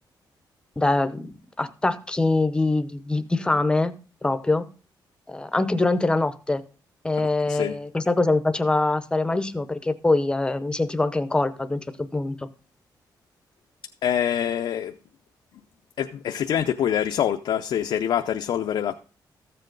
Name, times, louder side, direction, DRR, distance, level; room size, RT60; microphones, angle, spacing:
voice 1, 0.8-1.3 1.6-3.9 4.2-4.7 5.3-6.6 7.0-12.5, left 2 dB, 10° left, 0.7 m, -23 dB
voice 2, 7.2-7.7 14.0-14.9 16.0-18.9, left 9 dB, 80° left, 0.6 m, -25 dB
14.0 x 7.7 x 3.8 m
wide cardioid pair, 165°, 8 cm